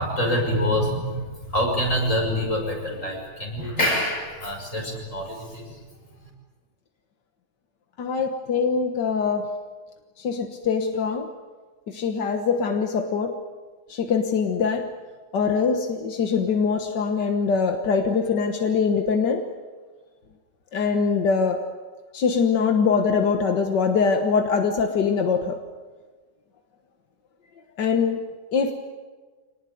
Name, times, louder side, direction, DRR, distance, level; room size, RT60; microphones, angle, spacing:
voice 1, 0.0-5.8, equal, 45° left, 1 dB, 6.5 m, -26 dB
voice 2, 8.0-9.5 10.2-11.3 11.9-13.4 13.9-14.9 15.3-19.4 20.7-21.6 22.1-25.6 27.8-28.2 28.5-28.7, left 5 dB, 90° left, 5 dB, 2.0 m, -23 dB
26.0 x 19.5 x 9.4 m, 1.4 s
omnidirectional pair, 1.8 m